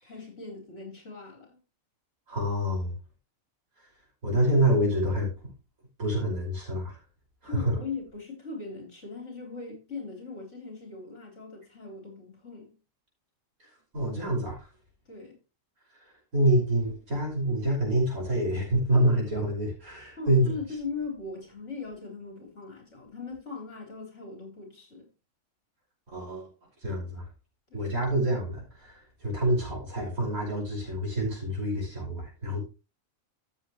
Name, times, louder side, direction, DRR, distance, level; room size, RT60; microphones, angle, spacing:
voice 1, 0.0-1.6 7.4-12.7 15.1-15.4 20.2-25.1 27.7-27.9, left 4 dB, 55° left, 4.3 m, -39 dB
voice 2, 2.3-2.9 4.2-5.3 6.0-7.0 7.4-7.7 13.9-14.6 16.3-20.5 26.1-26.5 26.8-27.2 27.7-32.6, right 1 dB, 80° right, 6.1 m, -27 dB
13.5 x 7.6 x 3.1 m
omnidirectional pair, 1.5 m